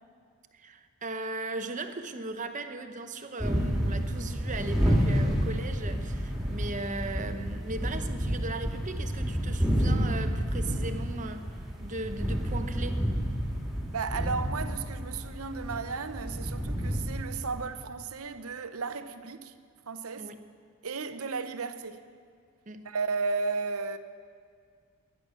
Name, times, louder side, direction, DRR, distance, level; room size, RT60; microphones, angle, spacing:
voice 1, 0.5-11.5 11.8-13.1 20.2-20.4 22.7-22.9, right 2 dB, 35° right, 0.8 m, -38 dB
sound 1, 3.4-17.6, equal, ahead, 2.4 m, -30 dB
voice 2, 13.9-19.5 19.9-20.3 20.8-22.0 22.8-24.0, right 4 dB, 75° right, 0.8 m, -34 dB
21.0 x 10.5 x 6.2 m
head